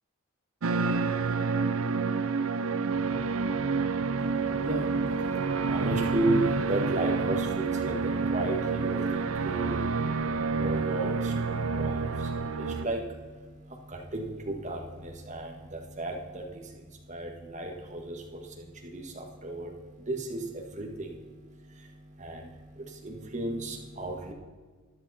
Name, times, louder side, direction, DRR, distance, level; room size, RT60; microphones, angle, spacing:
sound 1, 0.6-12.9, right 4 dB, 75° right, 0.6 m, -28 dB
voice 1, 4.2-24.3, right 1 dB, 35° right, 1 dB, 1.7 m, -35 dB
13.5 x 10.5 x 4.3 m, 1.5 s
head